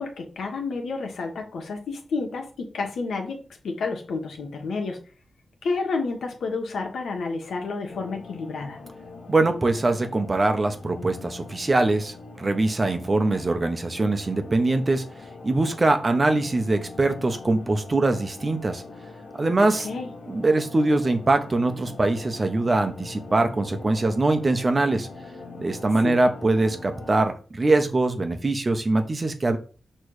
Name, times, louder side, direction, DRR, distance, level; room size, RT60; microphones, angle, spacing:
voice 1, 0.0-5.0 5.6-8.8 19.6-20.1 25.9-26.2, left 4 dB, 85° left, 2 dB, 1.5 m, -30 dB
sound 1, 7.9-27.2, left 3 dB, 60° left, 1.6 m, -42 dB
voice 2, 9.3-15.0 15.4-18.8 19.4-19.9 20.3-25.1 25.6-29.6, right 2 dB, 30° right, 7 dB, 0.9 m, -23 dB
6.4 x 3.3 x 4.9 m, 0.37 s
wide cardioid pair, 100°, 0 cm